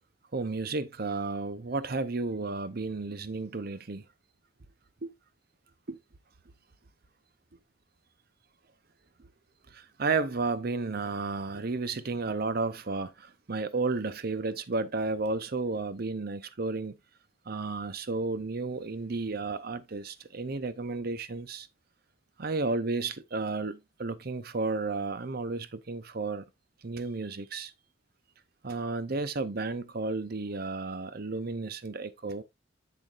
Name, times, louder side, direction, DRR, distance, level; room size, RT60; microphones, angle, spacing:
voice 1, 0.3-4.0 5.0-5.1 5.9-6.0 9.7-17.0 17.5-21.7 22.4-26.4 26.8-27.7 28.6-32.4, right 3 dB, 55° right, 0.8 m, -32 dB
8.3 x 6.9 x 2.5 m
head